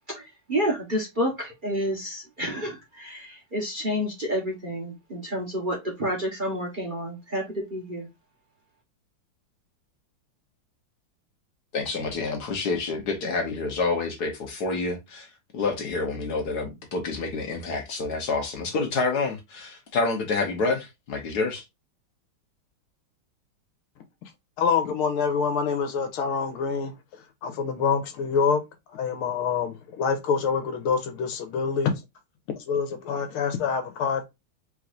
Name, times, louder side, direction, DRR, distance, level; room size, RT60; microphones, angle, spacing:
voice 1, 0.2-8.1, equal, 30° right, 1.1 m, -29 dB
voice 2, 11.7-15.3 15.5-21.6, left 3 dB, 55° left, 1.4 m, -28 dB
voice 3, 24.6-26.9 27.4-28.6 28.9-32.0 32.6-34.2, left 6 dB, 80° left, 1.8 m, -26 dB
4.7 x 3.8 x 2.5 m
omnidirectional pair, 2.3 m